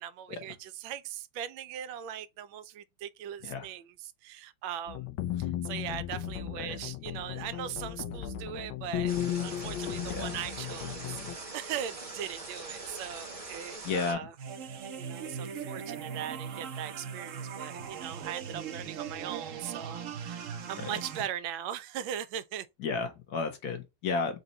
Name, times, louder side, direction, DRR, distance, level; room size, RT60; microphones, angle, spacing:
voice 1, 0.0-5.1 5.4-9.1 9.4-14.3 15.0-22.7, right 10 dB, 90° right, 1.4 m, -40 dB
sound 1, 4.9-11.3, left 11 dB, 85° left, 1.3 m, -35 dB
sound 2, 9.1-14.1, right 3 dB, 30° right, 0.7 m, -42 dB
voice 2, 13.8-14.3 20.8-20.9 22.8-24.4, left 4 dB, 60° left, 1.2 m, -32 dB
sound 3, 14.4-21.2, right 7 dB, 65° right, 0.8 m, -39 dB
4.1 x 2.3 x 3.8 m
omnidirectional pair, 2.1 m